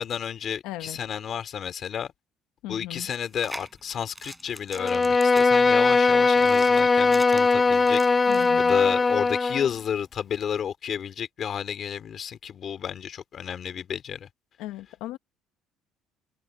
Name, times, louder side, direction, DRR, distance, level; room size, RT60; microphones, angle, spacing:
voice 1, 0.0-2.1 2.7-8.0 8.6-14.3, left 8 dB, 35° left, 2.9 m, -31 dB
voice 2, 0.6-1.0 2.6-3.1 8.3-8.8 14.6-15.2, left 16 dB, 85° left, 1.3 m, -37 dB
sound 1, 3.2-8.5, right 1 dB, 5° right, 5.4 m, -43 dB
Bowed string instrument, 4.7-9.7, left 4 dB, 15° left, 0.5 m, -20 dB
cardioid pair, 165°, 0 cm